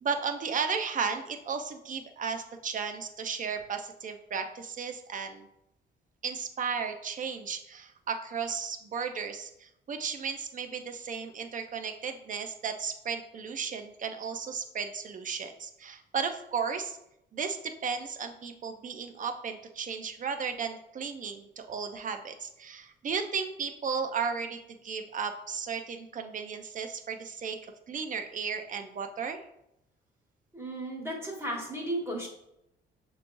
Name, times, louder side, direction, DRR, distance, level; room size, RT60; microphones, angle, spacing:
voice 1, 0.0-5.5 6.2-17.0 17.3-27.6 27.9-29.4, right 6 dB, 40° right, 6 dB, 0.6 m, -34 dB
voice 2, 30.5-32.3, right 1 dB, 10° right, -2 dB, 1.2 m, -34 dB
6.3 x 3.1 x 2.6 m, 0.81 s
cardioid pair, 90°, 20 cm